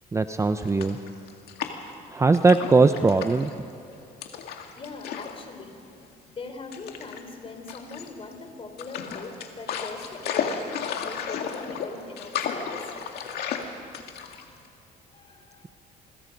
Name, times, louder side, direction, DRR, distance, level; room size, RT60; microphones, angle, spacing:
voice 1, 0.1-1.0 2.1-3.7, right 3 dB, 15° right, 9 dB, 0.7 m, -20 dB
sound 1, 0.6-2.0 2.3-3.5 4.2-5.4 5.7-5.9 6.7-7.2 7.7-8.3 8.8-14.7, left 7 dB, 70° left, 2.2 m, -33 dB
voice 2, 4.8-5.7 6.3-12.7 15.1-15.6, left 3 dB, 35° left, 6 dB, 3.4 m, -41 dB
27.5 x 22.0 x 5.3 m, 2.7 s
cardioid pair, 110°, 17 cm